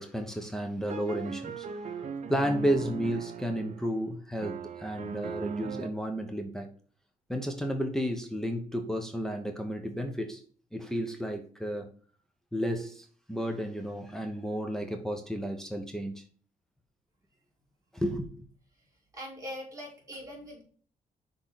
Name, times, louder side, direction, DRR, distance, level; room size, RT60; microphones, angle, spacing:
voice 1, 0.0-6.7 7.3-10.4 10.7-11.9 12.5-16.3 17.9-18.4, equal, 5° left, 0.9 m, -32 dB
sound 1, 0.9-4.0 4.4-5.9, right 6 dB, 55° right, 0.7 m, -38 dB
voice 2, 19.1-20.6, equal, 20° right, 3.4 m, -41 dB
6.2 x 3.8 x 5.8 m
cardioid pair, 130°, 14 cm